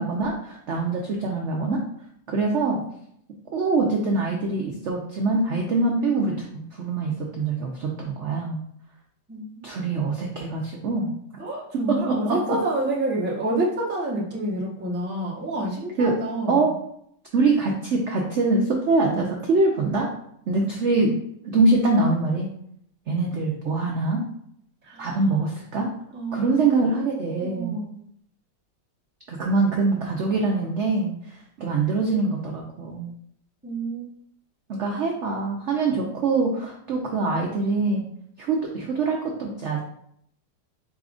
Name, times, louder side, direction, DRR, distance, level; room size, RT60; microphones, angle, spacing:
voice 1, 0.0-1.8 2.3-2.8 3.5-8.6 9.6-11.1 11.9-12.6 16.0-16.2 16.5-16.7 17.3-20.1 20.5-21.2 21.4-22.5 23.1-24.2 25.0-25.9 26.3-27.8 29.3-33.1 34.7-38.0 38.4-39.8, right 3 dB, 70° right, 0 dB, 0.6 m, -24 dB
voice 2, 9.3-9.7 11.4-16.7 24.8-25.2 26.1-27.1 27.3-27.9 33.6-34.1 34.9-35.3, right 2 dB, 15° right, -4 dB, 0.4 m, -29 dB
4.9 x 4.1 x 2.4 m, 0.70 s
omnidirectional pair, 1.9 m